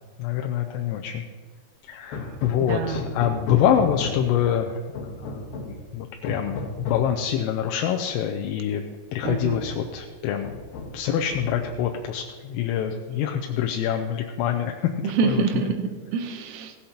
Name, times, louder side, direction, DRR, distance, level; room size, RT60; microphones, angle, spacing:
voice 1, 0.2-1.2 1.9-4.8 5.2-8.8 9.1-10.6 10.9-14.9 15.2-15.4, left 9 dB, 85° left, 3 dB, 3.3 m, -25 dB
Hammer, 2.1-4.4 5.0-5.8 6.2-7.2 8.2-8.3 8.7-8.8 9.2-9.9 10.4-11.0 11.3-12.0, left 3 dB, 65° left, 2.6 m, -34 dB
voice 2, 2.1-3.1 9.2-9.6 15.0-16.9, right 6 dB, 80° right, 6 dB, 3.4 m, -27 dB
16.5 x 13.5 x 2.9 m, 1.4 s
omnidirectional pair, 5.8 m